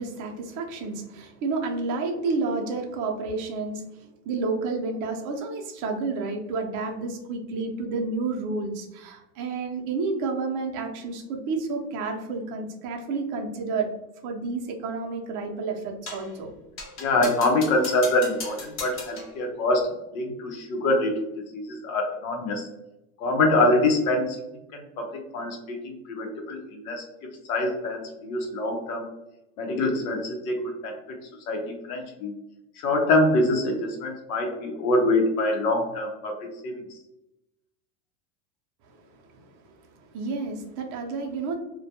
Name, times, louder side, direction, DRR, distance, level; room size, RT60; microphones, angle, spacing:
voice 1, 0.0-13.9 14.2-16.5 38.9-39.5 40.1-41.6, right 3 dB, 45° right, 2 dB, 0.6 m, -30 dB
sound 1, 16.1-16.3 16.8-19.4, left 3 dB, 30° left, 0.7 m, -38 dB
voice 2, 17.0-21.2 21.5-22.7 23.2-24.4 24.7-27.0 27.5-29.1 29.6-31.2 31.5-32.3 32.8-36.8, left 2 dB, 85° left, 1 dB, 0.7 m, -25 dB
2.2 x 2.2 x 2.7 m, 0.92 s
supercardioid pair, 130°, 42 cm